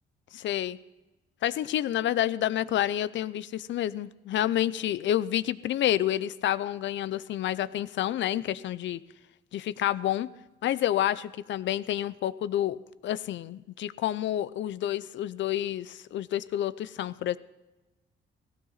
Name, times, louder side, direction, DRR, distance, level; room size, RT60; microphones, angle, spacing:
voice 1, 0.3-0.8 1.4-9.0 9.5-10.3 10.6-17.4, left 12 dB, 70° left, 17 dB, 0.5 m, -29 dB
16.5 x 15.0 x 4.0 m, 1.1 s
cardioid pair, 90°, 20 cm